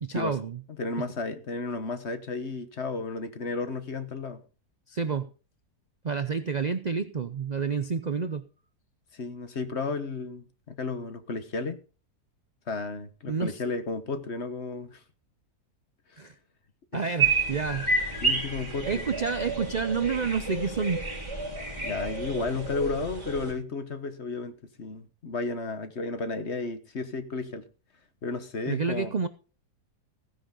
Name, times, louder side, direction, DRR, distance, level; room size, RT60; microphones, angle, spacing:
voice 1, 0.0-0.6 4.9-5.3 6.0-8.4 13.3-13.6 16.2-16.3 16.9-17.9 18.9-21.1 28.7-29.3, right 5 dB, 65° right, 0.4 m, -29 dB
voice 2, 0.7-4.4 9.1-11.8 12.7-15.0 16.1-16.2 16.9-17.2 18.2-19.0 21.8-27.7 28.2-29.1, left 3 dB, 45° left, 1.4 m, -33 dB
sound 1, 17.2-23.5, right 3 dB, 15° right, 3.8 m, -30 dB
16.0 x 10.0 x 3.8 m
omnidirectional pair, 1.7 m